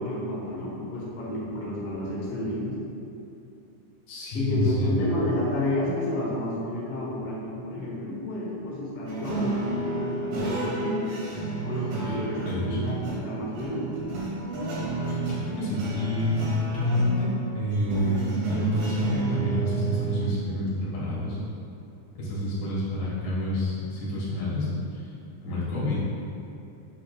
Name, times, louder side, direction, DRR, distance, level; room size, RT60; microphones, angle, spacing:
voice 1, 0.0-2.8 4.3-11.0 11.6-14.2, left 1 dB, 55° left, -6 dB, 1.7 m, -31 dB
voice 2, 4.1-5.0 12.0-12.2 12.4-12.8 15.4-21.4 22.2-25.1 25.4-26.0, left 1 dB, 75° left, -7 dB, 3.4 m, -28 dB
sound 1, 9.1-20.2, right 3 dB, 70° right, 3.2 m, -31 dB
7.6 x 7.0 x 2.4 m, 2.8 s
omnidirectional pair, 4.3 m